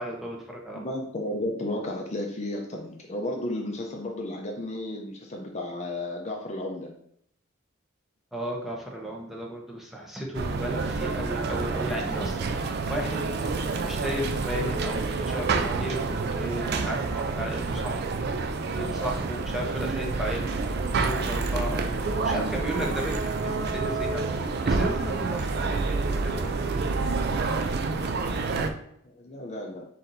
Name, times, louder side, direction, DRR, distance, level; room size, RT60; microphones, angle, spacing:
voice 1, 0.0-0.9 8.3-12.5 12.9-13.3 13.8-18.0 18.7-24.3 24.6-26.9, equal, ahead, -2 dB, 0.7 m, -34 dB
voice 2, 0.8-6.9 29.0-29.8, left 1 dB, 35° left, 1 dB, 0.5 m, -33 dB
sound 1, 10.3-28.7, right 4 dB, 50° right, 0.4 m, -28 dB
4.1 x 4.1 x 2.6 m, 0.70 s
head